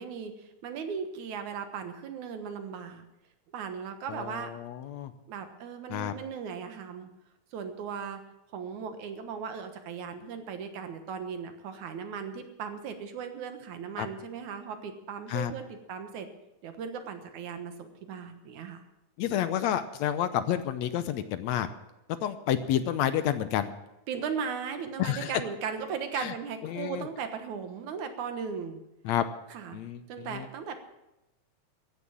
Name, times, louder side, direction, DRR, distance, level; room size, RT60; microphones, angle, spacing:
voice 1, 0.0-3.1 3.5-4.5 5.3-7.1 7.5-8.2 8.5-16.3 16.6-18.8 24.1-28.8 29.5-29.8 30.1-30.8, right 6 dB, 80° right, 7 dB, 2.7 m, -37 dB
voice 2, 4.1-5.1 5.9-6.1 14.0-14.1 15.3-15.5 19.2-21.7 22.2-23.7 25.0-25.3 26.2-26.3 26.6-27.1 29.1-29.3 29.7-30.5, left 10 dB, 75° left, 11 dB, 1.9 m, -30 dB
15.0 x 10.0 x 7.3 m, 0.93 s
omnidirectional pair, 3.4 m